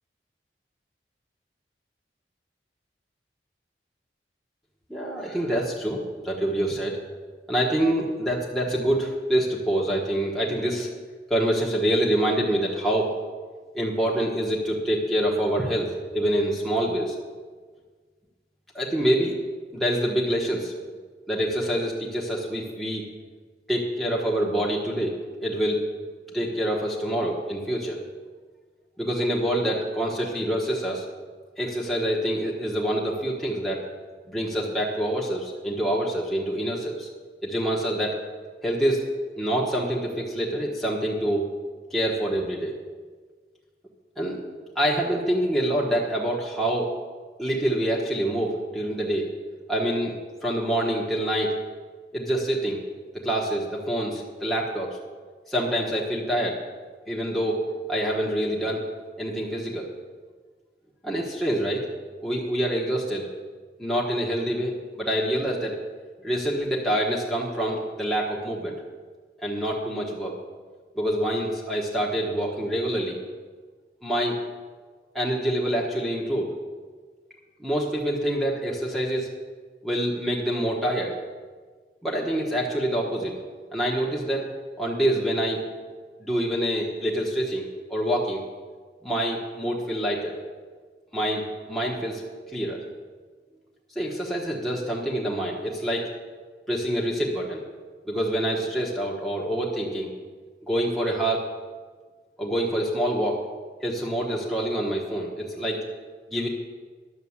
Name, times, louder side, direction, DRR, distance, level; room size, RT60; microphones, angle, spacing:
voice 1, 4.9-7.0 7.5-10.9 11.3-13.2 13.7-17.2 18.7-19.4 19.7-20.7 21.3-23.0 23.7-25.9 26.3-28.0 29.0-31.0 31.6-33.8 34.3-37.1 37.4-38.2 38.6-39.1 39.4-41.5 41.9-42.7 44.2-44.4 44.7-46.9 47.4-49.3 49.7-51.6 52.1-52.8 53.1-55.0 55.5-56.6 57.1-57.6 57.9-58.8 59.2-59.9 61.0-61.9 62.2-63.3 63.8-65.7 66.2-68.8 69.4-70.3 70.9-73.2 74.0-74.4 75.1-76.5 77.6-79.3 79.8-81.2 82.0-83.4 83.7-84.5 84.8-85.6 86.2-88.4 89.0-90.4 91.1-92.2 92.5-92.9 93.9-96.1 96.7-97.6 98.1-100.1 100.6-101.4 102.4-103.4 103.8-105.8 106.3-106.5, right 1 dB, ahead, -4 dB, 1.3 m, -26 dB
11.0 x 7.4 x 7.3 m, 1.5 s
head